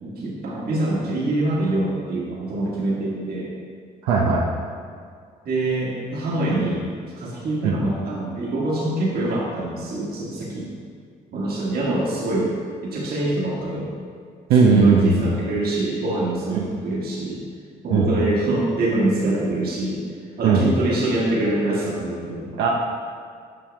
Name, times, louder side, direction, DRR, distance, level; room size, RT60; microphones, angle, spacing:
voice 1, 0.0-3.5 5.4-6.9 7.2-10.7 11.3-12.5 12.8-13.9 14.6-17.4 17.8-20.0 20.4-22.5, right 2 dB, 60° right, -5 dB, 1.6 m, -24 dB
voice 2, 4.0-4.5 7.6-7.7 14.5-15.3 16.5-16.7 17.9-18.1 20.4-20.6 22.6-22.7, right 4 dB, 80° right, -3 dB, 0.7 m, -17 dB
7.5 x 5.5 x 3.4 m, 2.1 s
supercardioid pair, 60°, 18 cm